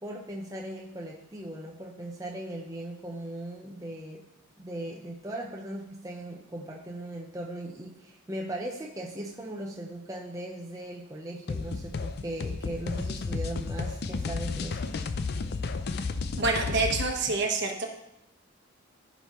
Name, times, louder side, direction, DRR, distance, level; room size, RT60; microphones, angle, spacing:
voice 1, 0.0-4.3 4.6-15.0, right 1 dB, 15° right, -1 dB, 0.8 m, -38 dB
sound 1, 11.5-17.1, left 4 dB, 50° left, 0.4 m, -32 dB
voice 2, 16.4-17.9, right 3 dB, 50° right, 2 dB, 1.2 m, -27 dB
14.5 x 5.4 x 3.1 m, 0.81 s
head